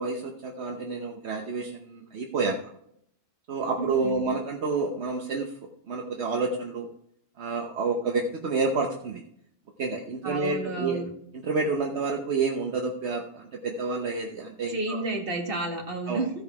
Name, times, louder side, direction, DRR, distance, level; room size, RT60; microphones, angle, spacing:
voice 1, 0.0-2.6 3.5-5.5 5.9-6.9 7.4-9.2 9.8-11.0 11.4-15.0 16.1-16.2, right 4 dB, 75° right, 1 dB, 1.2 m, -29 dB
voice 2, 3.8-4.3 10.2-11.1 14.7-16.3, right 2 dB, 55° right, 1 dB, 2.0 m, -31 dB
15.0 x 5.4 x 4.6 m, 0.71 s
omnidirectional pair, 1.1 m